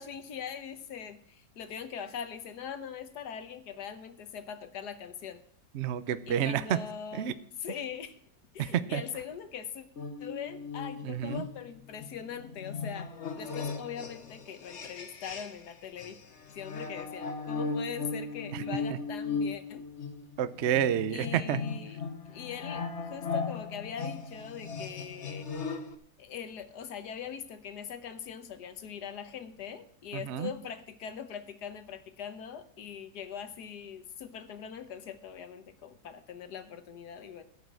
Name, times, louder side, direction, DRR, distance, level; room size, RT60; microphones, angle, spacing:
voice 1, 0.0-5.4 6.3-8.2 8.5-9.8 10.2-13.1 13.3-16.2 16.5-19.8 21.1-22.0 22.3-25.5 26.2-37.4, left 7 dB, 70° left, 10 dB, 1.5 m, -41 dB
voice 2, 5.7-6.8 7.1-7.3 8.6-9.0 11.0-11.4 18.5-18.6 20.4-21.6 30.1-30.5, right 10 dB, 65° right, 14 dB, 0.6 m, -29 dB
sound 1, 10.0-15.7 16.0-26.0, left 4 dB, 45° left, 1.2 m, -37 dB
15.0 x 5.7 x 7.5 m, 0.63 s
omnidirectional pair, 1.9 m